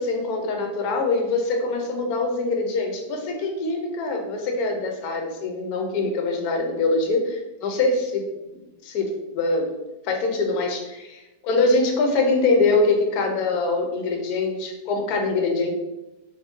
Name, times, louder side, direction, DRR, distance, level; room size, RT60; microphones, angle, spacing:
voice 1, 0.0-8.2 8.8-9.7 10.0-15.7, left 3 dB, 70° left, 3 dB, 1.1 m, -23 dB
2.9 x 2.6 x 3.5 m, 0.98 s
omnidirectional pair, 1.8 m